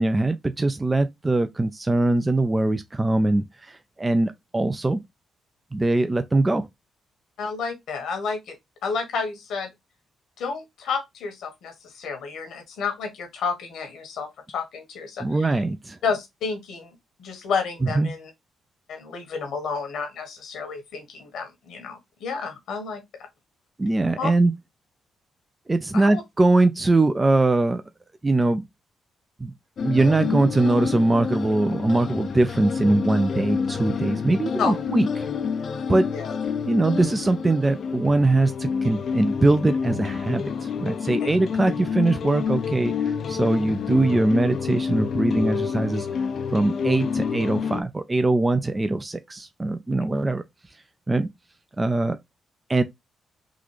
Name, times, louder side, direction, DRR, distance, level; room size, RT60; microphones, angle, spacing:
voice 1, 0.0-5.0 5.7-6.7 15.2-16.0 17.8-18.1 23.8-24.5 25.7-27.8 28.2-28.6 29.4-29.5 29.8-35.1 35.9-36.1 36.7-42.9 43.3-46.1 46.5-50.4 51.1-51.3 51.8-52.2 52.7-52.8, right 2 dB, 25° right, 0.4 m, -22 dB
voice 2, 7.4-8.6 8.8-9.7 10.4-15.6 16.0-16.9 17.2-18.3 18.9-23.0 24.2-24.3 25.9-26.2 34.6-34.7 36.1-36.4 41.2-41.3, left 5 dB, 75° left, 1.2 m, -30 dB
sound 1, 29.8-47.8, left 6 dB, 60° left, 0.5 m, -28 dB
3.7 x 2.4 x 3.1 m
supercardioid pair, 55°, 0 cm